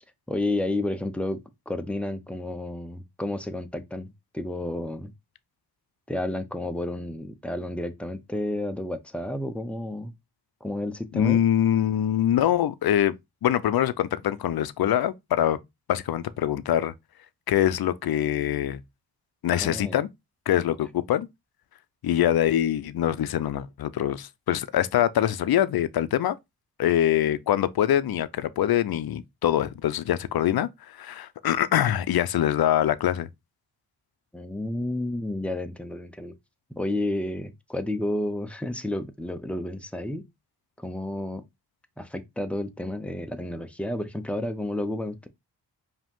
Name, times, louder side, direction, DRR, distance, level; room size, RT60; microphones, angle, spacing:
voice 1, 0.3-5.1 6.1-10.1 10.6-11.4 19.6-20.0 34.3-36.4 36.8-40.2 40.8-41.4 42.0-45.3, left 1 dB, 5° left, 0.6 m, -31 dB
voice 2, 11.1-13.1 13.4-15.6 15.9-16.9 17.5-18.8 19.4-20.1 20.5-21.3 22.0-26.4 26.8-30.7 31.0-33.3, left 11 dB, 65° left, 0.6 m, -24 dB
5.0 x 2.9 x 3.6 m
cardioid pair, 85°, 40 cm